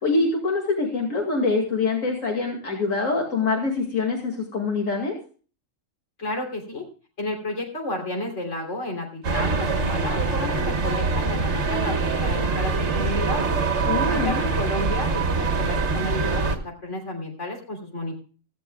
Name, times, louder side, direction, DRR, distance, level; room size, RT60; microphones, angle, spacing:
voice 1, 0.0-5.1 13.9-14.3, left 3 dB, 85° left, 1 dB, 2.7 m, -24 dB
voice 2, 6.2-6.8 7.2-13.5 14.1-18.1, left 1 dB, 65° left, 2 dB, 3.7 m, -32 dB
sound 1, 9.2-16.6, right 4 dB, 60° right, 1.5 m, -24 dB
16.5 x 15.5 x 2.3 m, 0.38 s
omnidirectional pair, 1.3 m